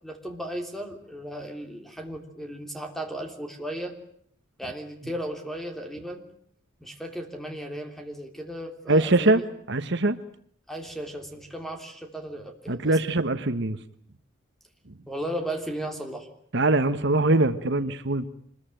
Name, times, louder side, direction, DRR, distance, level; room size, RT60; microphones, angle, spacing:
voice 1, 0.0-3.9 4.6-6.2 6.8-9.4 10.7-12.9 15.1-16.3, right 1 dB, ahead, 4 dB, 3.3 m, -35 dB
voice 2, 8.9-9.4 9.7-10.2 12.7-13.8 16.5-18.2, right 2 dB, 60° right, 10 dB, 1.2 m, -22 dB
25.5 x 21.5 x 9.0 m, 0.63 s
head